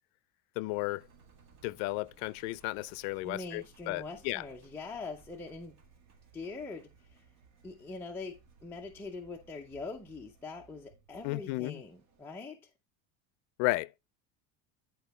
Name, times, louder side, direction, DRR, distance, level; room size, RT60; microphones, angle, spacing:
voice 1, 0.6-1.0 1.6-4.5 11.2-11.8 13.6-13.9, left 20 dB, 70° left, 0.5 m, -33 dB
Engine, 0.7-12.3, right 5 dB, 40° right, 1.8 m, -61 dB
voice 2, 3.2-5.7 6.3-6.9 7.6-12.6, left 3 dB, 5° left, 0.6 m, -43 dB
10.5 x 4.5 x 3.1 m
cardioid pair, 170°, 38 cm